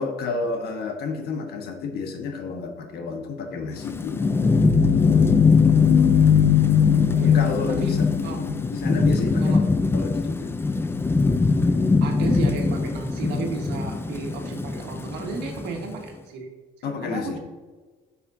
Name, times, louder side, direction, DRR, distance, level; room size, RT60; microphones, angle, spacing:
voice 1, 0.0-4.2 7.3-8.1 8.4-10.5 16.8-17.4, left 4 dB, 70° left, 4 dB, 1.3 m, -30 dB
sound 1, 3.7-9.3, left 9 dB, 85° left, 0.7 m, -20 dB
Thunderstorm / Rain, 3.7-16.0, left 3 dB, 15° left, 0.4 m, -23 dB
voice 2, 12.0-16.5 16.8-17.4, right 4 dB, 90° right, 2 dB, 1.5 m, -33 dB
9.8 x 5.6 x 2.7 m, 1.3 s
cardioid pair, 110°, 17 cm